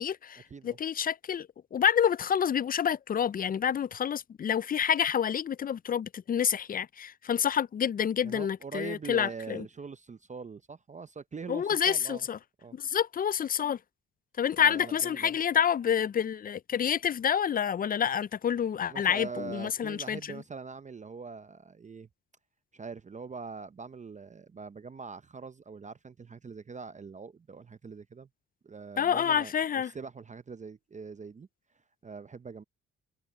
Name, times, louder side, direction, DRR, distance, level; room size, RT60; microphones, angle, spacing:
voice 1, 0.0-9.6 11.5-12.4 12.7-13.8 14.4-20.2 29.0-29.9, left 8 dB, 30° left, 0.4 m, -28 dB
voice 2, 8.2-12.3 12.6-12.8 14.6-15.4 18.9-22.1 22.7-28.3 28.6-31.5 32.0-32.6, right 5 dB, 25° right, 0.6 m, -43 dB
cardioid pair, 90°, 30 cm